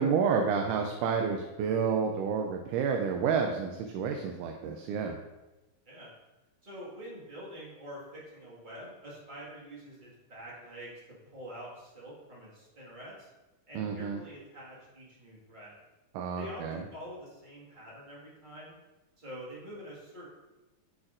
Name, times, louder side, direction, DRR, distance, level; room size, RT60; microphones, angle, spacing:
voice 1, 0.0-5.2 13.8-14.2 16.2-16.8, right 6 dB, 80° right, 4 dB, 2.0 m, -29 dB
voice 2, 6.6-11.0 11.3-13.3 13.7-15.7 16.3-18.8 19.2-20.3, equal, 25° right, -7 dB, 1.1 m, -46 dB
11.5 x 4.0 x 2.5 m, 1.1 s
omnidirectional pair, 3.8 m